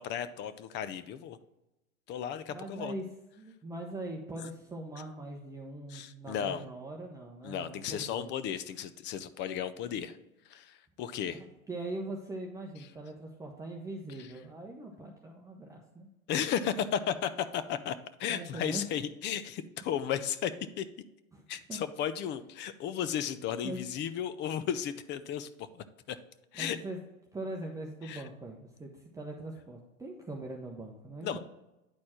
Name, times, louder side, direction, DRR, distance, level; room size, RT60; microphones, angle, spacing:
voice 1, 0.0-1.4 2.1-2.9 5.9-6.6 7.4-10.2 10.5-11.4 14.2-14.3 16.3-20.5 20.8-20.9 21.5-26.2 26.5-26.8 28.0-28.2 31.2-31.4, left 9 dB, 25° left, 13 dB, 0.4 m, -34 dB
voice 2, 2.5-3.0 3.4-8.3 11.3-16.1 18.3-18.8 21.3-21.4 21.7-21.8 23.6-23.8 26.5-27.0 27.3-31.4, right 2 dB, 10° right, -1 dB, 0.8 m, -41 dB
10.0 x 4.2 x 4.4 m, 0.96 s
hypercardioid pair, 110°, 43 cm